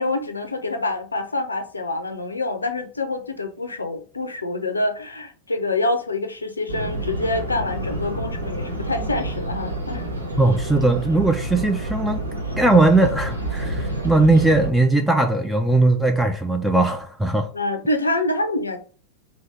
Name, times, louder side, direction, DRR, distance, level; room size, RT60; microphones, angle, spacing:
voice 1, 0.0-10.1 17.5-18.8, left 2 dB, 80° left, 0.5 m, -26 dB
sound 1, 6.7-14.7, right 1 dB, 85° right, 0.8 m, -29 dB
voice 2, 10.4-12.2 12.6-17.5, right 2 dB, 5° right, 0.3 m, -19 dB
2.9 x 2.8 x 3.2 m
figure-of-eight pair, 90°, 0 cm